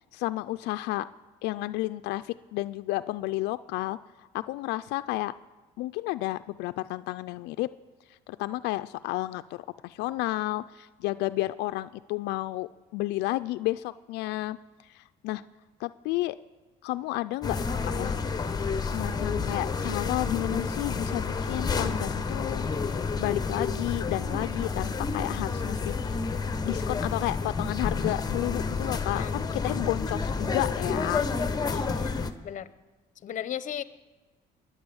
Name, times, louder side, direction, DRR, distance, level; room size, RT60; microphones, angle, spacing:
voice 1, 0.1-1.1 1.4-4.0 4.3-5.3 5.8-7.7 8.3-14.6 14.9-15.4 15.8-16.4 16.8-18.5 18.8-22.7 23.2-31.3, left 17 dB, 90° left, 11 dB, 0.4 m, -32 dB
sound 1, 17.4-32.3, left 4 dB, 25° left, 1.1 m, -30 dB
voice 2, 29.1-29.8 31.7-32.7 33.2-33.8, left 10 dB, 50° left, 14 dB, 0.8 m, -37 dB
22.0 x 9.4 x 7.1 m, 1.3 s
cardioid pair, 110°, 17 cm